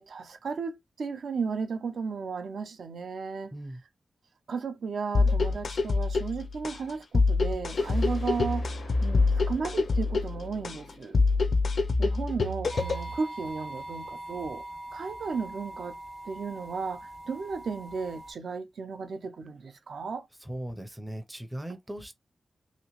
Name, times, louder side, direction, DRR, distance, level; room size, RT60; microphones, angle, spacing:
voice 1, 0.0-3.5 4.5-11.2 12.0-14.6 14.9-16.0 16.2-20.3, right 5 dB, 80° right, 0.6 m, -34 dB
sound 1, 5.1-13.1, left 3 dB, 55° left, 0.4 m, -26 dB
sound 2, 7.7-13.2, left 3 dB, 85° left, 0.7 m, -49 dB
sound 3, 12.7-18.3, right 1 dB, 45° right, 0.8 m, -42 dB
voice 2, 20.4-22.1, right 1 dB, 10° right, 0.5 m, -38 dB
2.9 x 2.9 x 2.9 m
wide cardioid pair, 155°, 0 cm